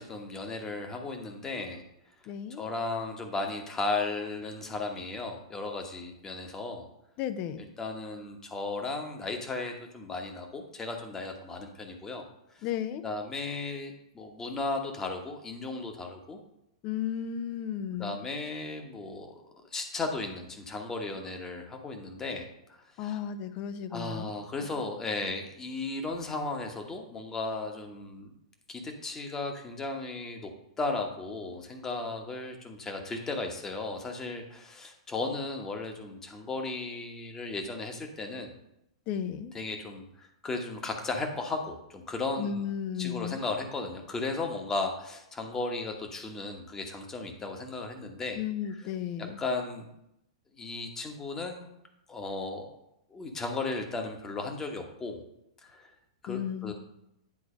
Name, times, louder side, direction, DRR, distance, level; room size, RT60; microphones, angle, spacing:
voice 1, 0.0-1.8 2.6-6.9 7.8-12.2 12.5-12.7 13.0-16.4 18.0-19.3 19.7-23.2 23.9-28.3 28.7-30.5 30.8-38.6 39.5-42.7 43.0-48.9 49.4-49.9 50.6-51.7 52.1-52.7 53.1-55.2 55.6-55.9 56.2-56.7, left 3 dB, 15° left, 3 dB, 1.2 m, -35 dB
voice 2, 2.3-2.6 7.2-7.7 12.6-13.0 16.8-18.2 23.0-24.3 39.1-39.5 42.4-43.4 48.4-49.4 56.3-56.7, left 9 dB, 35° left, 11 dB, 0.6 m, -34 dB
8.6 x 4.6 x 5.1 m, 0.81 s
figure-of-eight pair, 100°, 3 cm